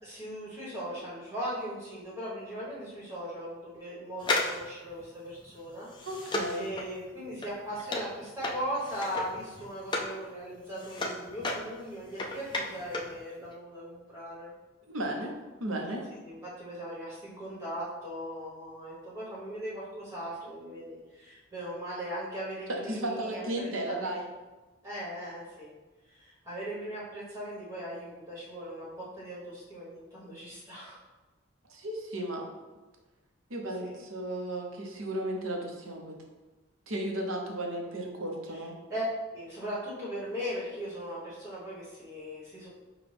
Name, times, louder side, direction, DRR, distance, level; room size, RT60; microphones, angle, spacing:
voice 1, 0.0-6.3 6.6-14.5 16.2-24.1 24.8-25.7 26.1-31.0 33.8-34.0 38.5-39.0 39.3-42.7, equal, 15° right, -7 dB, 1.3 m, -39 dB
sound 1, 4.2-10.2 10.5-13.2 13.4-13.5, left 2 dB, 20° left, 0.4 m, -34 dB
voice 2, 6.0-6.7 14.9-15.3 15.6-16.1 22.9-24.3 31.7-32.5 33.5-36.2 36.9-38.7, right 1 dB, 85° right, 1 dB, 0.8 m, -34 dB
5.9 x 2.3 x 3.4 m, 1.2 s
head